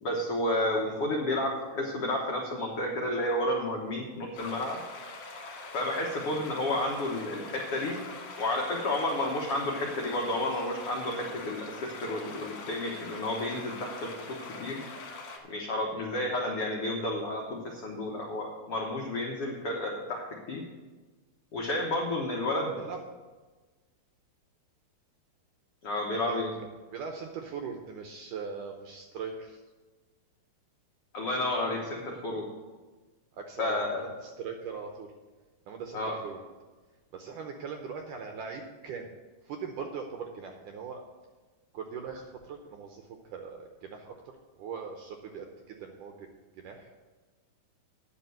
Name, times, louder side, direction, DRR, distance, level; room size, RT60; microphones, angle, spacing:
voice 1, 0.0-4.8 5.7-8.0 8.4-14.1 14.6-14.8 15.5-20.6 21.5-22.8 25.8-26.5 31.1-32.4 33.6-34.0 35.9-36.2, left 1 dB, 75° left, -1 dB, 1.3 m, -31 dB
sound 1, 4.3-15.4, left 3 dB, 55° left, 2.3 m, -43 dB
voice 2, 26.2-29.6 33.3-35.1 35.7-36.4 37.1-39.1 39.4-41.0 41.7-44.2 44.6-46.3 46.5-46.9, right 6 dB, 75° right, 4 dB, 1.9 m, -40 dB
10.0 x 6.0 x 7.8 m, 1.3 s
omnidirectional pair, 4.5 m